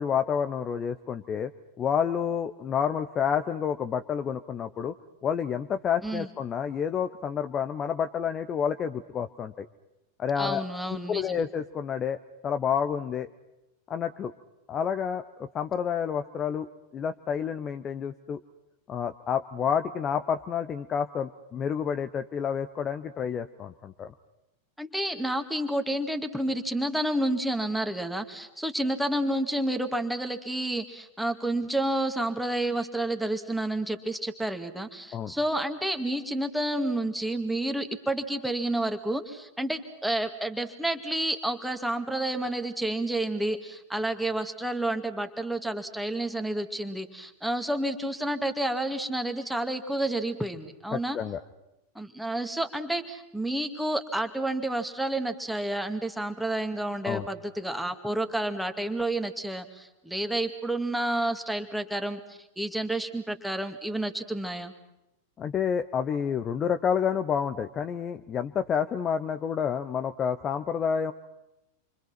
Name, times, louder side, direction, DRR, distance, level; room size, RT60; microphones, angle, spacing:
voice 1, 0.0-1.5 1.8-5.0 5.2-9.7 10.2-10.6 11.1-12.2 12.4-13.3 13.9-14.3 14.7-16.7 16.9-18.4 18.9-24.1 35.1-35.3 50.9-51.4 57.0-57.3 65.4-71.1, left 7 dB, 25° left, 9 dB, 0.9 m, -29 dB
voice 2, 10.4-11.4 24.8-51.2 52.0-64.7, right 1 dB, ahead, 6 dB, 2.1 m, -30 dB
28.5 x 24.5 x 6.0 m, 0.93 s
figure-of-eight pair, 90°, 0 cm